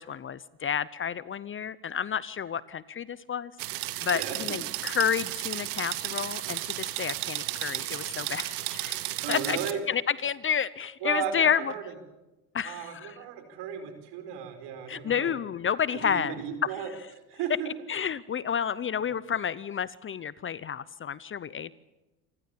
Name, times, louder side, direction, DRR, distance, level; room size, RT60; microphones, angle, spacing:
voice 1, 0.0-9.6 9.9-11.7 12.5-13.2 14.9-16.8 17.9-21.7, left 8 dB, 30° left, 19 dB, 0.7 m, -30 dB
sound 1, 3.6-9.7, right 17 dB, 85° right, 1.6 m, -33 dB
voice 2, 4.1-4.6 9.2-9.8 11.0-11.8 12.6-15.3 15.9-16.9 17.3-17.7, right 7 dB, 65° right, 7 dB, 4.8 m, -35 dB
28.0 x 15.5 x 8.6 m, 1.0 s
supercardioid pair, 90°, 44 cm